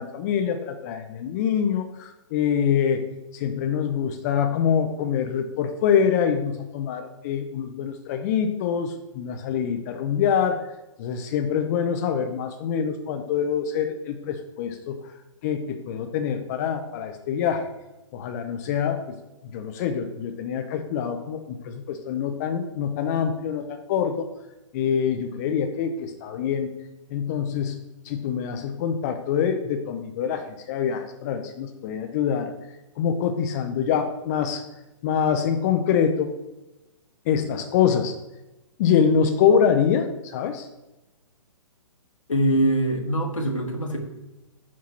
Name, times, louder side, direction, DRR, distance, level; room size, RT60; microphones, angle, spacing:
voice 1, 0.0-3.0 3.3-10.6 11.0-15.0 15.4-17.7 18.1-19.1 19.5-24.3 24.7-26.7 27.1-27.8 28.0-32.5 33.0-34.6 35.0-36.3 37.3-38.1 38.8-40.7, left 7 dB, 30° left, 6 dB, 0.6 m, -25 dB
voice 2, 42.3-44.0, right 1 dB, 75° left, 2 dB, 1.6 m, -23 dB
5.6 x 4.6 x 5.8 m, 0.99 s
figure-of-eight pair, 125°, 17 cm